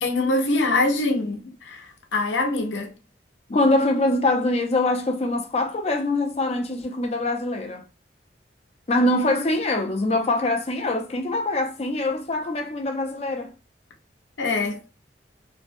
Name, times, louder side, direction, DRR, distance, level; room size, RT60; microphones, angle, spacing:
voice 1, 0.0-1.8 2.1-2.9 14.4-14.8, left 2 dB, 85° left, 0.6 m, -23 dB
voice 2, 3.5-7.8 8.9-13.5, left 2 dB, 35° left, 0.4 m, -23 dB
2.6 x 2.1 x 2.6 m
head